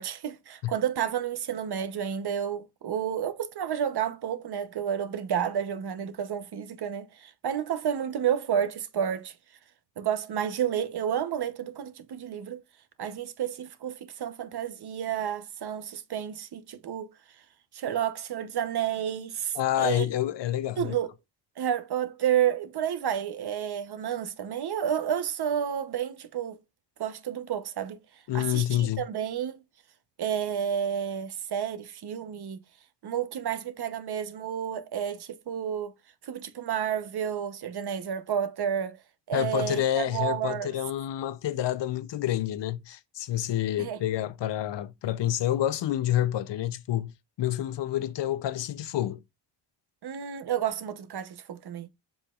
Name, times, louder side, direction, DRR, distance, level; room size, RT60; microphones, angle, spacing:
voice 1, 0.0-9.3 10.0-12.6 13.0-17.1 17.7-20.1 20.8-21.1 21.6-26.6 27.0-28.0 28.3-29.6 30.2-32.6 33.0-35.9 36.2-39.0 39.3-40.7 43.8-44.0 50.0-51.9, right 9 dB, 65° right, 0.9 m, -30 dB
voice 2, 19.5-20.9 28.3-29.0 39.3-47.1 47.4-49.2, left 12 dB, 80° left, 0.7 m, -28 dB
7.1 x 5.7 x 2.4 m
cardioid pair, 100°, 42 cm